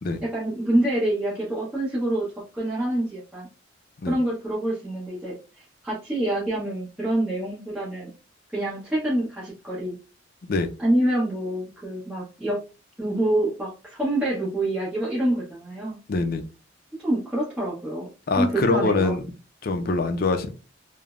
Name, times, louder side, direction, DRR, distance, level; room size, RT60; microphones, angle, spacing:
voice 1, 0.3-2.3 2.5-3.5 4.0-8.1 8.5-10.0 10.8-12.6 13.0-16.0 17.0-18.1 18.4-19.1, right 1 dB, 5° right, -8 dB, 0.8 m, -26 dB
voice 2, 16.1-16.4 18.3-19.2 19.6-20.5, left 3 dB, 50° left, 7 dB, 0.4 m, -24 dB
3.2 x 2.0 x 2.4 m, 0.32 s
head